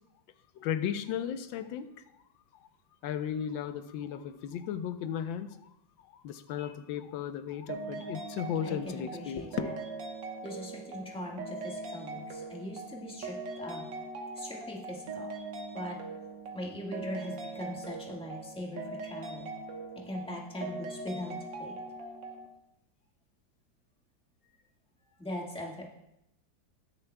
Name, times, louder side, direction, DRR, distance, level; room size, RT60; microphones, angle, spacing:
voice 1, 0.5-1.9 3.0-5.7 6.0-9.7, left 9 dB, 90° left, 10 dB, 1.4 m, -35 dB
sound 1, 7.7-22.5, right 3 dB, 70° right, 1.8 m, -41 dB
voice 2, 8.6-9.8 10.4-13.8 14.3-15.3 15.7-16.0 16.5-19.5 20.0-21.8 25.2-25.9, left 1 dB, 5° left, -2 dB, 1.3 m, -40 dB
20.0 x 6.8 x 2.2 m, 0.83 s
omnidirectional pair, 2.1 m